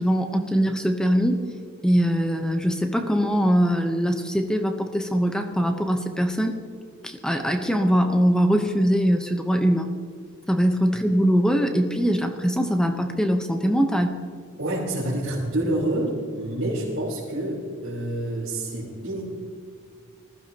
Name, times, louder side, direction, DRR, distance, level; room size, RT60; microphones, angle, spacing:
voice 1, 0.0-1.4 1.8-6.6 7.0-9.9 10.5-14.2, equal, 5° left, 5 dB, 0.8 m, -22 dB
voice 2, 14.6-19.2, right 1 dB, 85° right, -9 dB, 3.8 m, -27 dB
20.0 x 14.5 x 2.9 m, 2.2 s
head